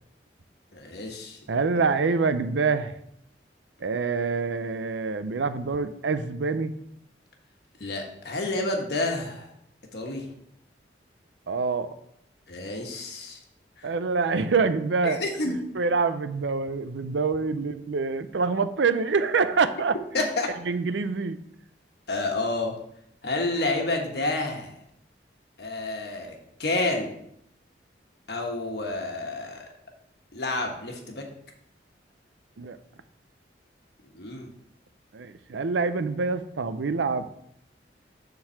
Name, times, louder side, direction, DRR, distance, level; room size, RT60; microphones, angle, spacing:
voice 1, 0.7-1.6 7.8-9.5 9.9-10.3 12.5-13.4 13.8-13.9 15.0-15.6 20.1-20.5 22.1-22.7 23.2-24.7 25.6-27.2 28.3-29.7 30.3-31.2 34.1-34.5, left 2 dB, 65° left, 2 dB, 1.3 m, -29 dB
voice 2, 1.5-2.9 3.8-6.7 11.5-11.9 13.8-15.2 15.7-19.9 20.7-21.4 32.6-32.8 35.1-37.3, right 4 dB, 85° right, 12 dB, 0.5 m, -26 dB
7.2 x 3.9 x 6.3 m, 0.74 s
head